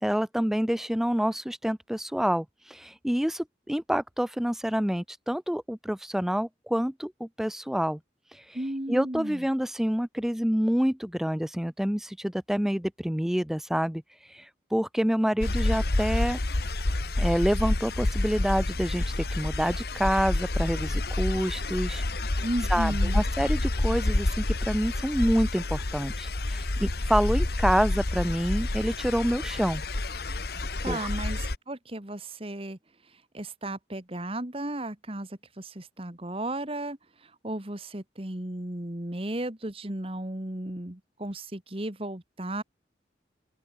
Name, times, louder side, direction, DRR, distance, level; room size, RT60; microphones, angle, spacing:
voice 1, 0.0-8.0 8.3-16.4 17.2-29.8 30.8-31.1, equal, ahead, 0.3 m, -28 dB
voice 2, 8.5-9.5 22.4-23.2 30.8-32.8 33.3-42.6, right 1 dB, 30° right, 1.9 m, -34 dB
sound 1, 15.4-31.6, left 2 dB, 60° left, 1.3 m, -28 dB
open air
head